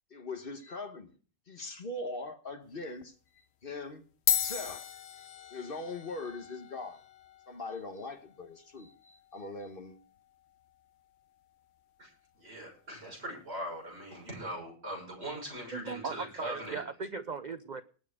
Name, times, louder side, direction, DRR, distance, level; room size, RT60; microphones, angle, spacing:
voice 1, 0.1-1.1 1.5-4.0 4.3-7.0 7.5-10.0, left 2 dB, 40° left, 1.3 m, -41 dB
sound 1, 2.6-2.9 3.8-3.9 4.1-12.8, left 9 dB, 55° left, 0.9 m, -38 dB
voice 2, 12.4-16.8, right 1 dB, 40° right, 6.8 m, -41 dB
voice 3, 15.7-17.8, right 4 dB, 75° right, 0.4 m, -38 dB
19.5 x 6.7 x 4.9 m
omnidirectional pair, 1.6 m